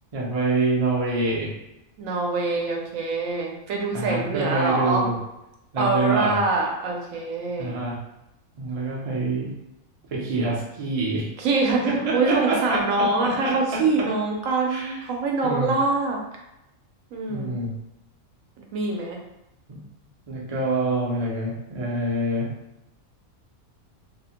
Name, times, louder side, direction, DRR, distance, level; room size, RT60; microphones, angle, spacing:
voice 1, 0.1-1.5 3.9-5.2 5.7-6.4 7.6-8.0 8.6-9.5 10.1-11.3 11.7-14.1 14.7-15.1 15.4-15.8 17.3-17.8 19.7-19.8 20.3-22.5, right 2 dB, 50° right, -4 dB, 0.4 m, -26 dB
voice 2, 2.0-5.1 5.8-7.7 11.4-11.8 12.1-16.2 17.1-17.5 18.6-19.2, right 3 dB, 75° right, 0 dB, 1.0 m, -24 dB
2.7 x 2.0 x 2.8 m, 0.89 s
omnidirectional pair, 1.5 m